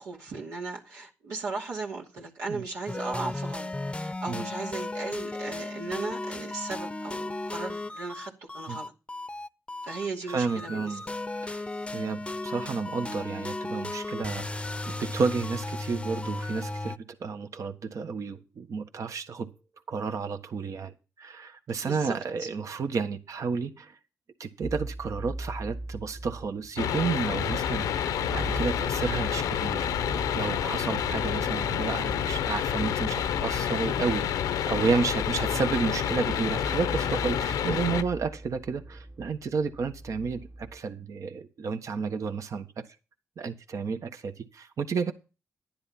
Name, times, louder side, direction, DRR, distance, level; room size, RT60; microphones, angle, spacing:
voice 1, 0.0-8.9 9.8-11.0 21.8-22.5, right 3 dB, 85° right, 2.5 m, -37 dB
sound 1, 2.9-17.0, left 2 dB, 20° left, 0.7 m, -35 dB
voice 2, 10.3-11.0 11.4-19.5 19.9-24.0 24.4-29.9 30.3-34.3 34.7-42.8 43.4-45.1, right 5 dB, 65° right, 1.4 m, -31 dB
sound 2, 24.6-40.8, right 1 dB, 20° right, 1.0 m, -40 dB
sound 3, 26.8-38.0, left 9 dB, 90° left, 0.8 m, -29 dB
10.5 x 10.5 x 4.3 m
supercardioid pair, 50°, 6 cm